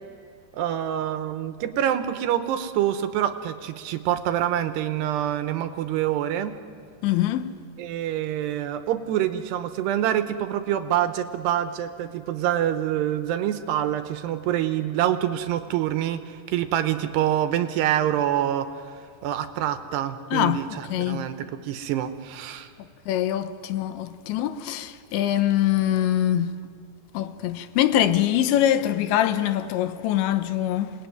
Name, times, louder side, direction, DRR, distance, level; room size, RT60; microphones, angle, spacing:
voice 1, 0.5-6.6 7.8-18.7 19.2-22.7, right 11 dB, 75° right, 2.9 m, -26 dB
voice 2, 7.0-7.5 20.3-21.3 23.1-26.5 27.1-30.9, left 12 dB, 85° left, 3.3 m, -23 dB
27.5 x 20.0 x 9.3 m
omnidirectional pair, 5.1 m